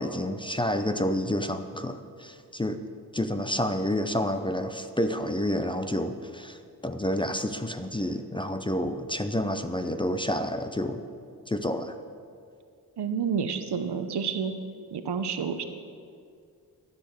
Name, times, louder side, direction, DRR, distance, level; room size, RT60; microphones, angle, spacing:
voice 1, 0.0-2.8 3.1-6.6 6.8-11.0 11.5-12.0, left 1 dB, 15° left, 8 dB, 0.5 m, -29 dB
voice 2, 13.0-14.5 14.9-15.6, right 6 dB, 80° right, 8 dB, 0.9 m, -29 dB
12.5 x 8.0 x 6.5 m, 2.3 s
wide cardioid pair, 105°, 39 cm